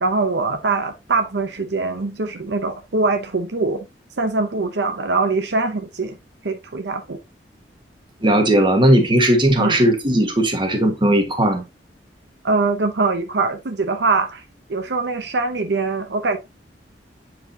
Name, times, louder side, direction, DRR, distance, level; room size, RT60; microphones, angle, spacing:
voice 1, 0.0-3.9 4.2-6.2 6.4-7.2 9.6-9.9 12.4-14.4 14.7-16.4, right 3 dB, 70° right, 0.8 m, -22 dB
voice 2, 8.2-11.6, right 1 dB, 30° right, 1.5 m, -17 dB
8.1 x 4.8 x 2.8 m
head